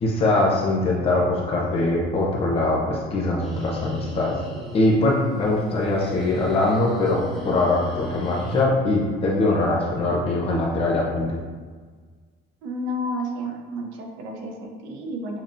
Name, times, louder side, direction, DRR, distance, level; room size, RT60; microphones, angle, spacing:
voice 1, 0.0-4.3 4.7-11.3, left 2 dB, 30° left, -3 dB, 0.7 m, -22 dB
sound 1, 3.4-8.6, left 1 dB, ahead, 0.8 m, -36 dB
voice 2, 12.6-15.4, equal, 80° right, 2 dB, 0.8 m, -31 dB
7.2 x 2.8 x 2.5 m, 1.5 s
cardioid pair, 180°, 19 cm